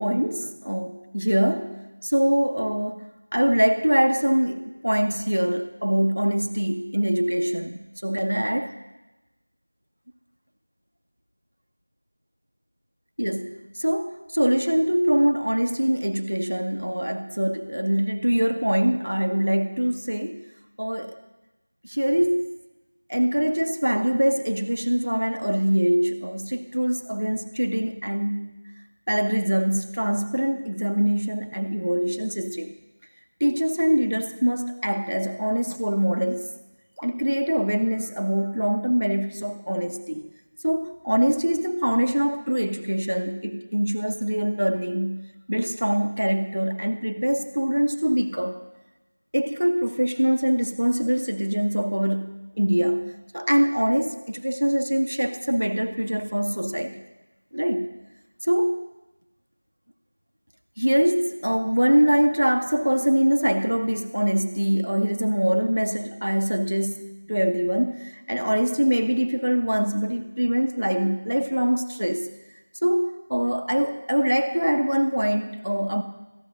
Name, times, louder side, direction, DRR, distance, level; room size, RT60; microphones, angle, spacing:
voice 1, 0.0-3.1 3.3-8.8 13.2-20.5 20.8-21.2 21.8-22.5 23.1-28.6 29.1-32.7 33.4-36.5 37.0-40.3 40.6-45.2 45.5-48.6 49.3-57.0 57.5-58.0 58.4-58.8 60.8-72.3 72.8-76.0, equal, 80° right, 8 dB, 1.2 m, -24 dB
14.5 x 10.0 x 5.3 m, 1.1 s
figure-of-eight pair, 180°, 0 cm